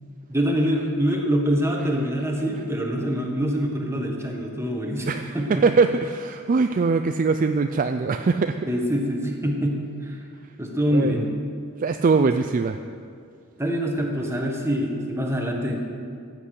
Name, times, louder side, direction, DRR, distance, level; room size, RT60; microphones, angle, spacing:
voice 1, 0.3-5.6 8.6-10.3 10.6-11.3 12.3-12.4 13.6-15.8, equal, 10° right, 1 dB, 1.4 m, -25 dB
voice 2, 5.1-8.6 10.9-11.2 11.8-12.8, right 4 dB, 35° right, 7 dB, 0.4 m, -22 dB
14.0 x 8.1 x 6.5 m, 2.3 s
head